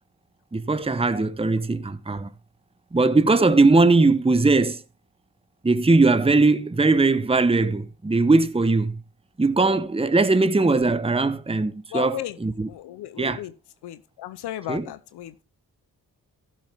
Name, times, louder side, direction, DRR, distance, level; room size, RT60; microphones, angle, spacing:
voice 1, 0.5-2.3 2.9-4.8 5.6-9.0 9.4-12.7 13.2-13.4 14.7-14.8, right 3 dB, 15° right, 1.0 m, -20 dB
voice 2, 11.9-12.4 12.7-13.5 13.8-15.4, left 12 dB, 75° left, 0.8 m, -34 dB
15.0 x 7.5 x 3.5 m
hypercardioid pair, 40°, 40 cm